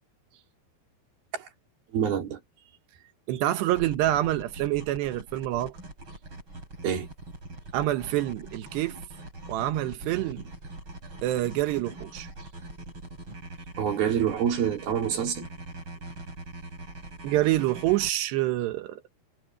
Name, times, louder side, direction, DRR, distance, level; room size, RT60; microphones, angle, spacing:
voice 1, 1.9-2.4 6.8-7.1 13.8-15.5, right 8 dB, 65° right, 4.7 m, -26 dB
voice 2, 3.3-5.7 7.7-9.0 9.5-10.5 11.2-12.3 17.2-19.0, right 15 dB, 90° right, 3.3 m, -27 dB
sound 1, 3.7-18.1, right 2 dB, 30° right, 8.5 m, -43 dB
omnidirectional pair, 4.7 m